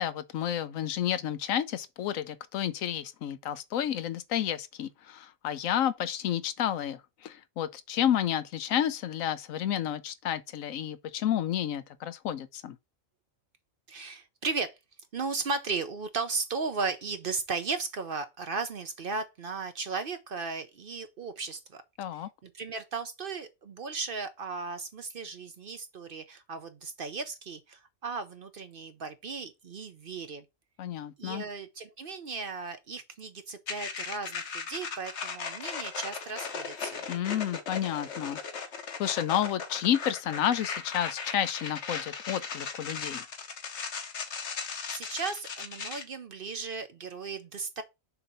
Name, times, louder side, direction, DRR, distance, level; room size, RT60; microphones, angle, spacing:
voice 1, 0.0-12.8 22.0-22.3 30.8-31.4 37.1-38.4 39.0-43.2, left 10 dB, 80° left, 1.1 m, -31 dB
voice 2, 13.9-14.8 15.1-21.8 22.1-30.4 31.2-37.1 44.7-47.8, right 4 dB, 50° right, 0.7 m, -36 dB
sound 1, 33.7-46.0, left 5 dB, 60° left, 1.2 m, -37 dB
6.7 x 2.8 x 5.4 m
omnidirectional pair, 1.4 m